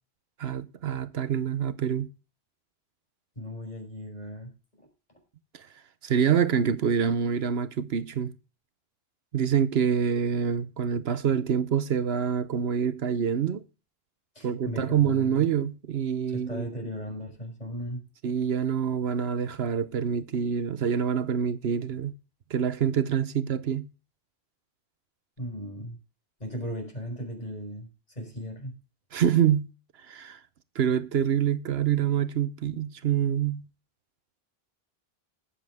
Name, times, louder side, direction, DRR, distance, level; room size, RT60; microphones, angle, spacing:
voice 1, 0.4-2.1 5.5-5.7 6.0-8.3 9.3-13.6 14.4-16.6 18.2-22.1 22.5-23.9 29.1-29.7 30.1-30.4 30.7-33.7, right 8 dB, 80° right, 1.1 m, -26 dB
voice 2, 3.4-4.5 14.4-15.5 16.3-18.0 25.4-26.0 26.4-27.9 28.2-28.7, equal, 40° left, 5.5 m, -36 dB
19.5 x 7.7 x 3.5 m
omnidirectional pair, 1.0 m